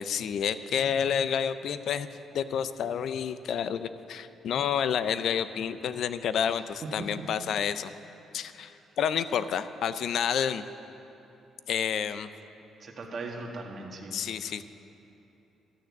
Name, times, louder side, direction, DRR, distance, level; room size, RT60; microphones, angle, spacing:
voice 1, 0.0-2.1 2.3-7.9 8.3-10.6 11.7-12.3 14.1-14.6, left 8 dB, 70° left, 13 dB, 0.5 m, -29 dB
voice 2, 12.8-14.1, right 3 dB, 50° right, -1 dB, 1.7 m, -39 dB
12.5 x 6.6 x 9.5 m, 2.9 s
cardioid pair, 90°, 0 cm